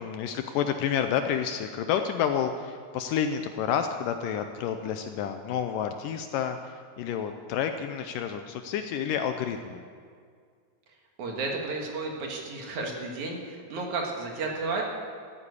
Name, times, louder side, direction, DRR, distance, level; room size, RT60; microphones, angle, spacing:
voice 1, 0.0-9.8, left 8 dB, 80° left, 7 dB, 2.0 m, -29 dB
voice 2, 11.2-14.8, right 3 dB, 60° right, 0 dB, 2.8 m, -32 dB
14.0 x 9.6 x 8.3 m, 2.1 s
omnidirectional pair, 4.2 m